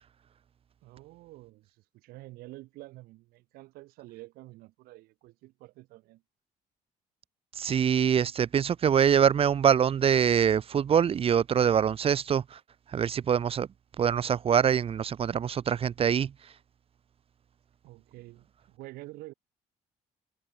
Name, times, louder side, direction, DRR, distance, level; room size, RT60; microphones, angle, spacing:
voice 1, 0.8-6.2 17.8-19.3, right 19 dB, 90° right, 7.7 m, -48 dB
voice 2, 7.6-12.6 12.9-13.7 14.0-16.3, right 8 dB, 40° right, 0.6 m, -24 dB
cardioid pair, 95°, 15 cm